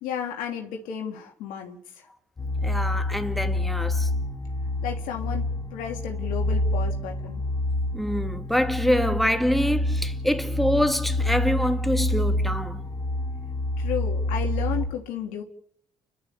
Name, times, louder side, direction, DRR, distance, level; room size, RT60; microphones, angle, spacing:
voice 1, 0.0-2.0 4.8-5.4 5.7-7.4 13.8-15.4, left 8 dB, 90° left, 3.0 m, -33 dB
sound 1, 2.4-14.9, left 1 dB, 30° left, 3.3 m, -27 dB
voice 2, 2.6-4.1 7.9-12.8, equal, ahead, 2.5 m, -25 dB
29.5 x 12.5 x 8.4 m
supercardioid pair, 65°, 13 cm